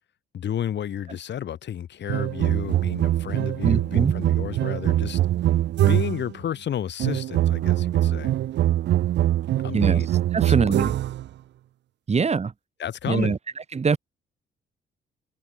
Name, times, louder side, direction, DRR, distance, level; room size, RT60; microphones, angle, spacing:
voice 1, 0.3-5.2 5.8-8.3 9.6-10.1 10.4-10.8 12.8-13.4, left 10 dB, 60° left, 3.4 m, -32 dB
sound 1, 2.1-6.3 7.0-11.3, right 13 dB, 65° right, 0.5 m, -23 dB
voice 2, 3.6-4.1 9.7-10.0 10.3-10.9 12.1-12.5 13.1-13.4 13.7-14.0, right 5 dB, 35° right, 1.9 m, -22 dB
cardioid pair, 90°, 20 cm